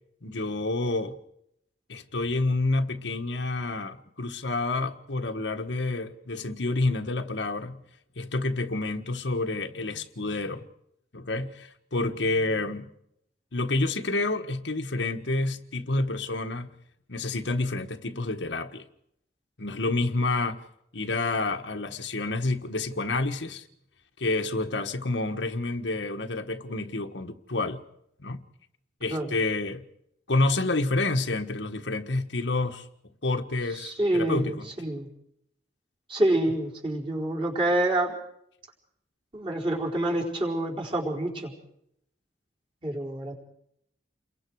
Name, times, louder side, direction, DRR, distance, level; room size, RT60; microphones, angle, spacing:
voice 1, 0.2-1.2 1.9-7.8 8.2-10.7 11.1-12.9 13.5-16.7 17.1-18.8 19.6-20.6 20.9-23.6 24.2-27.8 28.2-28.4 29.0-29.8 30.3-32.8 33.2-34.7, left 2 dB, 80° left, 1.6 m, -29 dB
voice 2, 33.7-35.1 36.1-38.2 39.3-41.5 42.8-43.3, right 1 dB, 30° right, 4.7 m, -27 dB
29.5 x 22.5 x 4.8 m
head